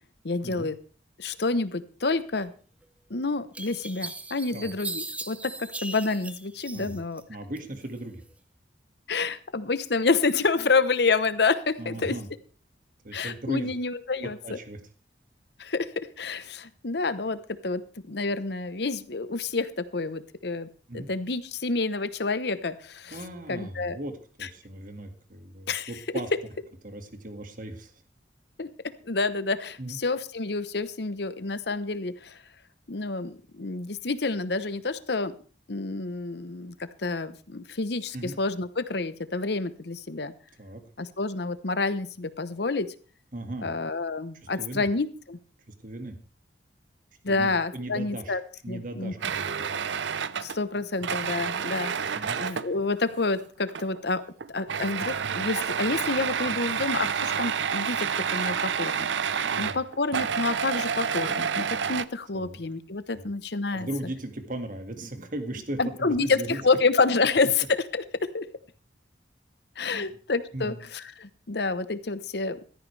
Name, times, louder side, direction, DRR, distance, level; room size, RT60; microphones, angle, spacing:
voice 1, 0.2-0.8 1.2-2.5 3.1-7.2 9.1-12.2 13.1-14.6 15.6-20.7 20.9-23.2 23.5-24.0 25.7-26.2 28.6-28.7 29.0-32.4 32.9-35.3 35.7-40.3 41.0-42.9 43.6-45.4 47.2-48.4 48.7-49.1 50.4-54.2 54.5-63.9 65.8-68.5 69.8-72.7, left 3 dB, 65° left, 13 dB, 1.0 m, -28 dB
sound 1, 2.8-2.9 3.5-7.2 7.6-8.3, right 2 dB, 10° right, 0.7 m, -38 dB
voice 2, 7.3-8.2 11.8-12.3 13.0-13.7 14.4-14.8 20.9-21.1 23.1-24.1 24.4-26.3 26.8-27.9 29.8-30.0 38.1-38.4 40.6-40.8 43.3-43.7 44.6-44.9 45.8-46.2 47.3-48.4 48.6-49.5 52.1-52.4 59.5-59.8 62.3-62.6 63.1-63.3 63.7-66.6 69.8-70.1 70.5-70.8, right 1 dB, 50° right, 6 dB, 2.0 m, -37 dB
sound 2, 49.2-52.7 53.7-54.1 54.4-62.0, right 7 dB, 80° right, 0.6 m, -29 dB
15.5 x 13.5 x 3.3 m, 0.40 s
head